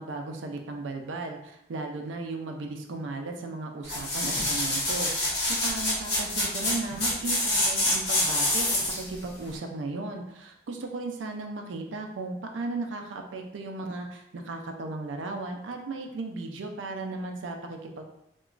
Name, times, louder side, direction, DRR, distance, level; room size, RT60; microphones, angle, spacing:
voice 1, 0.0-18.0, right 3 dB, 85° right, 3 dB, 0.4 m, -36 dB
sound 1, 3.8-9.1 9.6-9.7, left 1 dB, 55° left, 0.9 m, -26 dB
2.9 x 2.2 x 2.4 m, 0.78 s
head